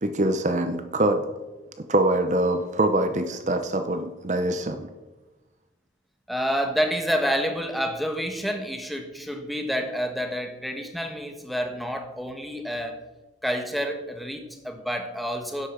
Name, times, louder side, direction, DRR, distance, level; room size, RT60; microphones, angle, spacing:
voice 1, 0.0-1.3 1.9-4.9, right 1 dB, 40° right, 8 dB, 0.7 m, -24 dB
voice 2, 6.3-13.0 13.4-15.7, equal, ahead, 4 dB, 1.3 m, -28 dB
10.5 x 8.3 x 6.8 m, 1.2 s
head